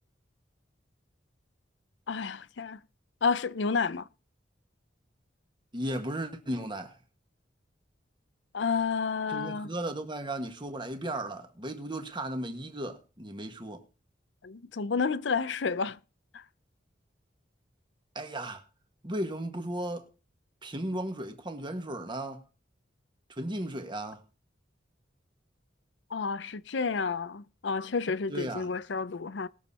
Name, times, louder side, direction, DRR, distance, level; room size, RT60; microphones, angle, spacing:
voice 1, 2.1-2.8 3.2-4.1 8.5-9.7 14.4-16.0 16.3-16.4 26.1-29.5, left 5 dB, 70° left, 0.6 m, -30 dB
voice 2, 5.7-7.0 9.3-13.8 18.1-18.6 19.0-20.1 20.6-22.4 23.4-24.2 28.3-28.7, right 1 dB, 25° right, 1.7 m, -35 dB
19.5 x 7.2 x 4.3 m
head